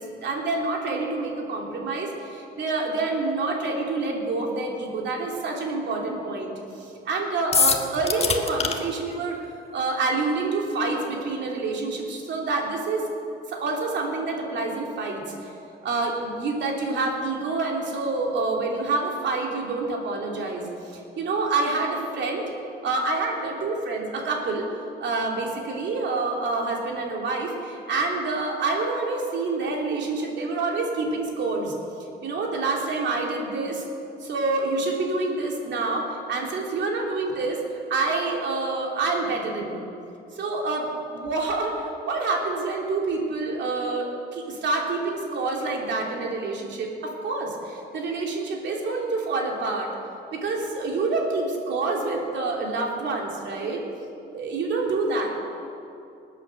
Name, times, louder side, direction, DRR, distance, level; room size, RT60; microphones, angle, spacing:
voice 1, 0.0-9.4 9.7-13.0 13.5-15.5 15.8-22.5 22.8-24.7 25.0-31.7 32.2-33.8 34.2-37.6 37.9-39.8 40.3-49.9 50.3-53.8 54.3-55.3, right 3 dB, 65° right, 0 dB, 2.8 m, -27 dB
sound 1, 7.5-8.7, left 5 dB, 30° left, 1.3 m, -22 dB
19.5 x 8.4 x 6.6 m, 2.7 s
cardioid pair, 95°, 20 cm